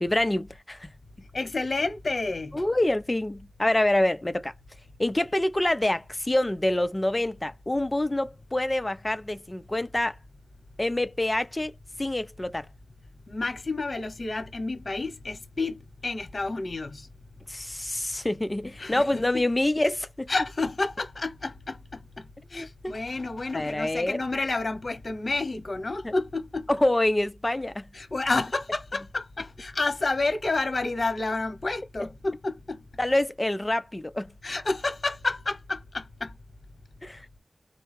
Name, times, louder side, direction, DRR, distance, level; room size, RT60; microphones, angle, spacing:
voice 1, 0.0-0.9 2.5-4.5 5.0-10.2 10.8-11.7 12.0-12.7 17.5-20.3 22.5-23.0 23.5-24.2 26.0-26.1 26.7-27.9 32.0-32.1 33.0-34.3 37.0-37.3, left 1 dB, 30° left, 0.6 m, -26 dB
voice 2, 1.3-2.6 13.3-17.1 18.8-19.2 20.3-22.0 22.5-26.7 27.9-32.8 34.4-36.3, left 3 dB, 70° left, 1.0 m, -30 dB
4.3 x 2.3 x 3.3 m
wide cardioid pair, 50°, 0 cm